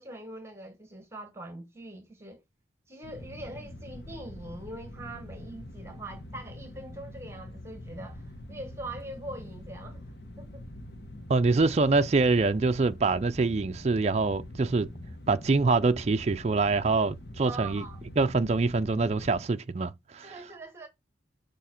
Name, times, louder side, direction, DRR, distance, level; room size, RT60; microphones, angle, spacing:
voice 1, 0.0-2.4 2.9-10.6 17.4-18.0 20.2-20.9, right 2 dB, 15° right, 1.1 m, -43 dB
sound 1, 3.0-19.5, left 1 dB, 60° left, 1.2 m, -44 dB
voice 2, 11.3-14.9 15.3-17.8 18.2-20.4, right 3 dB, 35° right, 0.4 m, -25 dB
7.1 x 5.1 x 4.3 m
head